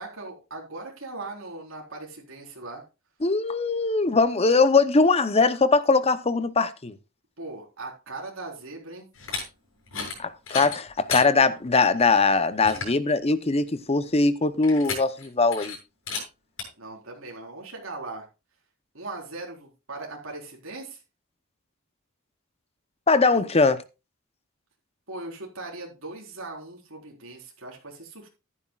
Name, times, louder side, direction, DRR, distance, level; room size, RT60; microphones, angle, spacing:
voice 1, 0.0-2.8 7.4-9.1 16.8-18.3 18.9-21.0 25.1-28.3, right 2 dB, 65° right, 4.2 m, -39 dB
voice 2, 3.2-7.0 10.2-15.8 23.1-23.8, left 3 dB, 30° left, 0.7 m, -21 dB
sound 1, 9.1-9.4 9.9-10.2 10.5-11.3 11.8-11.9 12.3-12.4 12.6-13.0 14.6-15.3 15.5-15.8 16.1-16.2 16.6-16.7, left 4 dB, 70° left, 7.0 m, -32 dB
14.0 x 11.5 x 2.4 m
head